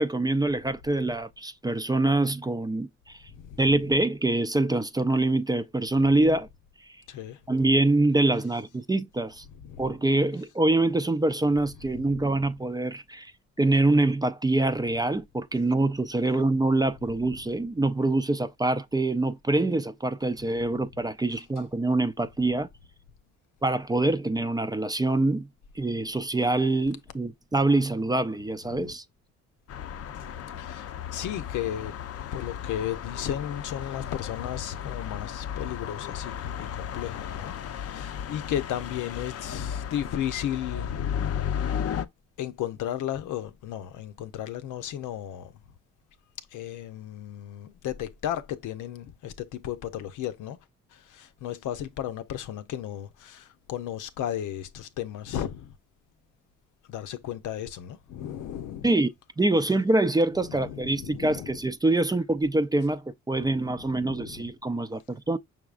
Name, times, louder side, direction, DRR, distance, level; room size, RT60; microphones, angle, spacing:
voice 1, 0.0-3.2 3.6-6.5 7.5-9.4 9.8-13.3 13.6-22.7 23.6-25.5 25.8-29.0 58.8-59.1 59.4-65.4, right 2 dB, 15° right, 0.4 m, -25 dB
voice 2, 3.3-3.8 7.1-7.4 9.5-9.9 11.9-12.4 20.6-20.7 28.7-28.9 30.1-30.3 30.6-31.9 32.3-41.1 41.4-41.6 42.4-45.6 46.5-50.6 50.9-55.7 56.9-58.9 60.4-61.6 63.4-64.5, left 11 dB, 85° left, 0.8 m, -35 dB
sound 1, 29.7-42.1, left 9 dB, 50° left, 0.6 m, -34 dB
6.0 x 3.5 x 2.4 m
cardioid pair, 90°, 30 cm